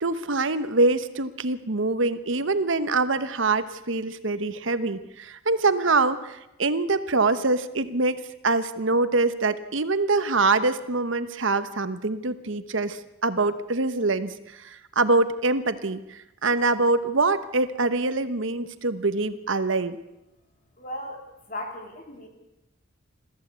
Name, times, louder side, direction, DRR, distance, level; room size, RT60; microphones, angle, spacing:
voice 1, 0.0-20.0, right 3 dB, 65° right, 11 dB, 1.1 m, -24 dB
voice 2, 20.8-22.3, left 1 dB, 40° left, 3 dB, 3.3 m, -37 dB
22.5 x 14.5 x 8.2 m, 0.92 s
head